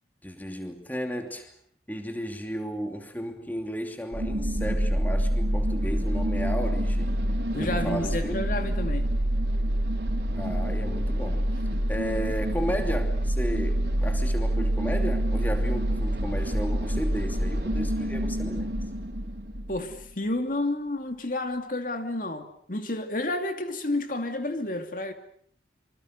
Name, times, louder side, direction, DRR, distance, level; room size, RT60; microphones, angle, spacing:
voice 1, 0.2-1.5 1.9-7.1 7.6-8.4 10.3-11.5 11.9-18.7, equal, 10° left, 2.8 m, -34 dB
sound 1, 4.1-20.0, right 1 dB, 65° right, 3.8 m, -27 dB
voice 2, 7.5-9.1 19.7-25.1, left 2 dB, 50° left, 2.5 m, -30 dB
27.5 x 25.5 x 6.7 m
head